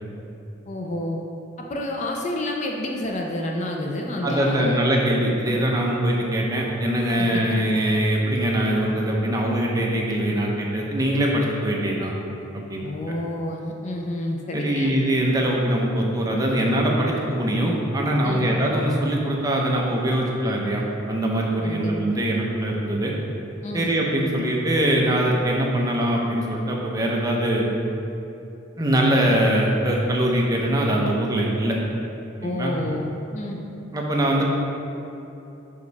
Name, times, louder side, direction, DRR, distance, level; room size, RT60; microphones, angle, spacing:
voice 1, 0.7-1.2 1.6-4.8 5.5-5.6 7.2-7.4 12.8-14.9 18.2-18.5 21.6-22.2 23.6-23.9 32.4-33.6, left 1 dB, 35° left, 1 dB, 0.4 m, -29 dB
voice 2, 4.2-12.1 12.5-12.9 14.5-23.1 23.7-27.7 28.8-31.8 32.4-32.7 33.9-34.4, right 1 dB, 15° right, -2 dB, 0.7 m, -22 dB
5.9 x 5.1 x 4.0 m, 2.9 s
head